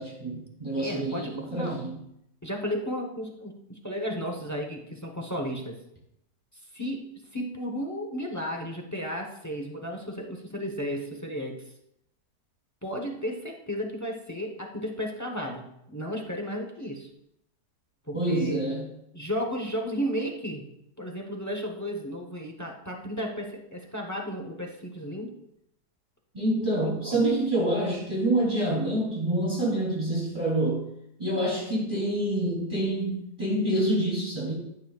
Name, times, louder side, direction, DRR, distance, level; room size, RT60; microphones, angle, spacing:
voice 1, 0.0-2.0 18.1-18.8 26.3-30.8 31.2-34.5, right 1 dB, 15° right, -6 dB, 2.9 m, -27 dB
voice 2, 0.8-1.8 2.4-5.8 6.7-11.6 12.8-17.1 18.1-18.7 19.1-20.7 21.0-25.3 26.7-27.2, equal, 15° left, 1 dB, 0.6 m, -34 dB
13.5 x 6.2 x 2.4 m, 0.80 s
omnidirectional pair, 1.8 m